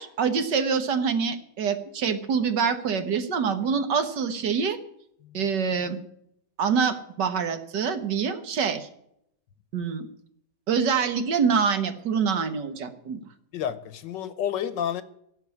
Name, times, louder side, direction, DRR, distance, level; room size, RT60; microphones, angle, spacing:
voice 1, 0.0-4.8 5.3-6.0 6.6-8.9 9.7-10.1 10.7-13.2, right 6 dB, 75° right, 1.8 m, -25 dB
voice 2, 13.5-15.0, left 9 dB, 80° left, 1.6 m, -30 dB
16.0 x 5.8 x 9.6 m
omnidirectional pair, 1.9 m